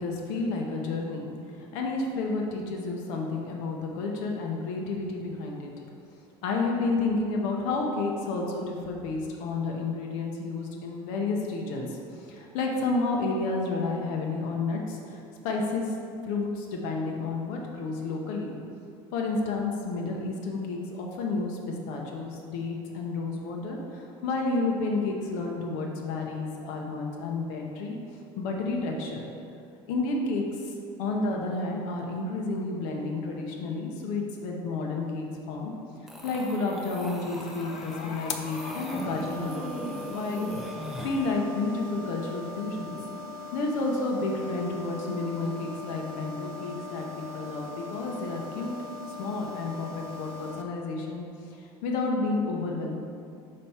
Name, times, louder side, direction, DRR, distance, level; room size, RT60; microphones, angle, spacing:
voice 1, 0.0-5.7 6.4-15.9 16.2-18.5 19.1-28.0 28.4-29.2 29.9-30.7 31.0-35.7 36.2-40.5 41.0-43.0 43.5-48.8 49.2-51.2 51.5-52.9, left 3 dB, 70° left, 0 dB, 0.9 m, -31 dB
sound 1, 36.1-41.4, right 1 dB, ahead, 0.5 m, -39 dB
sound 2, 37.1-50.6, left 3 dB, 50° left, 0.5 m, -40 dB
5.2 x 4.2 x 5.7 m, 2.5 s
cardioid pair, 155°, 14 cm